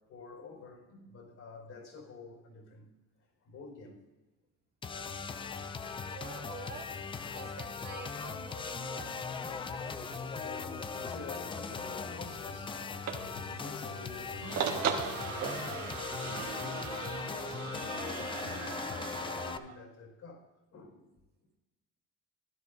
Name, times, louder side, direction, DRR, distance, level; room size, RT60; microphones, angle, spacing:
voice 1, 0.1-2.9 3.2-4.0 10.3-17.0 17.3-18.6 18.9-21.1, left 4 dB, 60° left, 4.7 m, -49 dB
sound 1, 4.8-19.6, left 5 dB, 15° left, 0.3 m, -39 dB
voice 2, 6.1-6.9 7.3-9.2, right 5 dB, 30° right, 0.9 m, -47 dB
sound 2, 8.8-15.6, right 7 dB, 55° right, 1.4 m, -40 dB
sound 3, 14.4-19.8, right 8 dB, 75° right, 1.3 m, -42 dB
16.0 x 11.5 x 2.6 m
cardioid pair, 145°, 32 cm